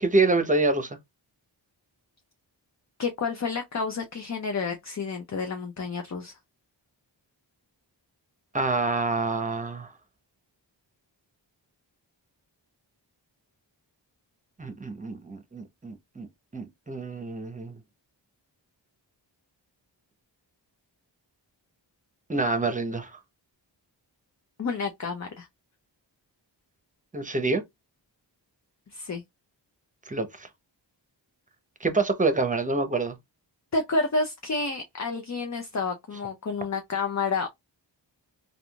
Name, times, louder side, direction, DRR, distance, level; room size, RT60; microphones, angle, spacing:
voice 1, 0.0-1.0 8.5-9.9 14.6-16.3 16.5-17.8 22.3-23.1 27.1-27.6 30.1-30.5 31.8-33.2, right 3 dB, 15° right, 0.7 m, -26 dB
voice 2, 3.0-6.4 24.6-25.5 28.9-29.2 33.7-37.5, left 4 dB, 40° left, 0.6 m, -30 dB
3.5 x 2.4 x 2.3 m
wide cardioid pair, 55°, 45 cm